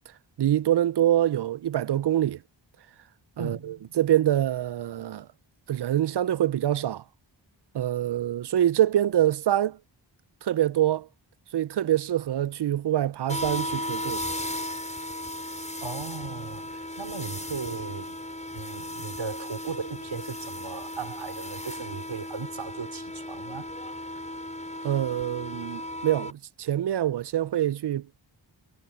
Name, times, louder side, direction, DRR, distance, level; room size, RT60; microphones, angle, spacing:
voice 1, 0.4-2.4 3.4-3.6 4.0-5.3 5.7-7.0 7.7-9.8 10.4-11.1 11.5-14.2 24.8-28.1, right 12 dB, 60° right, 0.5 m, -25 dB
voice 2, 3.4-3.9 15.8-18.3 18.5-23.7, right 5 dB, 85° right, 4.3 m, -37 dB
sound 1, 13.3-26.3, left 1 dB, 15° left, 6.5 m, -36 dB
cardioid pair, 45°, 46 cm